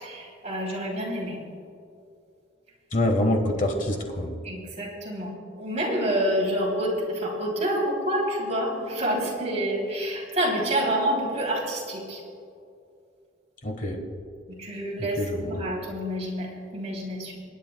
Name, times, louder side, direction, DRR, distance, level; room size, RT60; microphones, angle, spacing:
voice 1, 0.0-1.4 4.4-5.3 5.6-12.2 14.5-17.4, right 1 dB, 35° right, -4 dB, 3.1 m, -28 dB
voice 2, 2.9-4.3 13.6-14.0 15.2-15.6, left 1 dB, 45° left, 3 dB, 1.3 m, -25 dB
28.5 x 9.9 x 2.3 m, 2.4 s
head